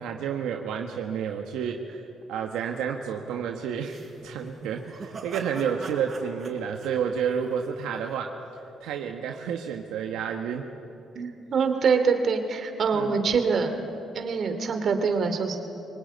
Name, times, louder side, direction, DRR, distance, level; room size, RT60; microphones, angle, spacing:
voice 1, 0.0-2.0 2.3-8.4 8.8-10.7 12.9-13.3, right 7 dB, 90° right, 3 dB, 1.4 m, -30 dB
sound 1, 3.8-8.0, right 4 dB, 35° right, 5.0 m, -42 dB
voice 2, 11.1-13.7 14.1-15.6, right 5 dB, 55° right, 6 dB, 2.7 m, -24 dB
25.0 x 19.0 x 9.4 m, 2.8 s
cardioid pair, 90°, 0 cm